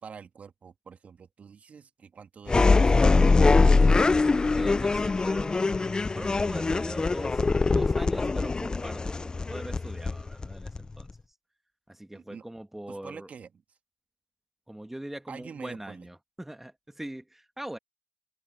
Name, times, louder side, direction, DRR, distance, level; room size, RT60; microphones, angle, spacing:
voice 1, 0.0-3.3 12.1-12.4 12.9-13.5 15.3-16.1, right 6 dB, 45° right, 2.4 m, -46 dB
sound 1, 2.5-11.1, left 3 dB, 25° left, 0.5 m, -23 dB
voice 2, 4.5-11.1 11.9-13.3 14.7-17.8, right 1 dB, 5° right, 2.1 m, -42 dB
open air
hypercardioid pair, 55°, 3 cm